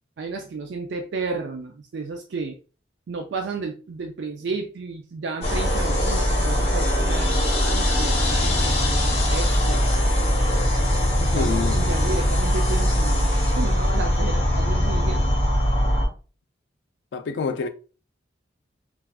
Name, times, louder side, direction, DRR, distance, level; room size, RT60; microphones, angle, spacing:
voice 1, 0.2-2.6 3.1-9.9 11.2-15.2, right 4 dB, 65° right, 0.4 m, -32 dB
sound 1, 5.4-16.1, left 1 dB, 30° left, 0.8 m, -21 dB
voice 2, 11.3-11.8 17.1-17.7, left 5 dB, 70° left, 0.3 m, -27 dB
3.4 x 2.3 x 2.3 m
head